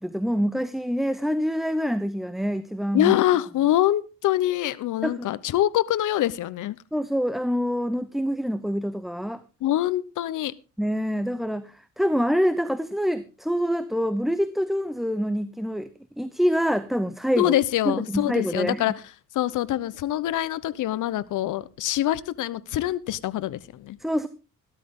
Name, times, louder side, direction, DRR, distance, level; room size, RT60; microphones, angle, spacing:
voice 1, 0.0-3.2 5.0-5.3 6.9-9.4 10.8-17.5 17.9-18.8 24.0-24.3, equal, ahead, 13 dB, 0.8 m, -26 dB
voice 2, 2.9-6.8 9.6-10.5 17.4-18.9 19.3-24.0, left 13 dB, 75° left, 16 dB, 1.0 m, -24 dB
15.0 x 13.0 x 3.8 m, 0.32 s
cardioid pair, 105°, 31 cm